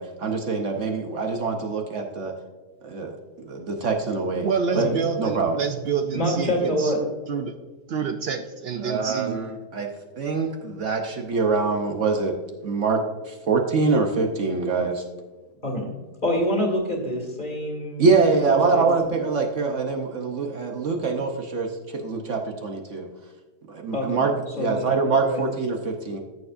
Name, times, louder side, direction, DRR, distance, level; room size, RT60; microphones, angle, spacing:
voice 1, 0.0-2.3 2.8-3.2 3.5-4.5 4.7-4.9 5.2-5.6 8.8-9.9 10.2-12.3 12.6-13.0 13.3-15.0 18.0-23.1 23.7-26.2, right 4 dB, 55° right, 3 dB, 1.0 m, -24 dB
voice 2, 4.4-6.9 7.3-7.5 7.9-9.4, right 6 dB, 90° right, 6 dB, 0.5 m, -27 dB
voice 3, 6.1-7.0 15.6-15.9 16.2-18.1 18.4-18.8 23.9-24.3 24.6-25.4, equal, 30° left, 0 dB, 2.1 m, -26 dB
14.0 x 6.9 x 2.5 m, 1.3 s
omnidirectional pair, 1.7 m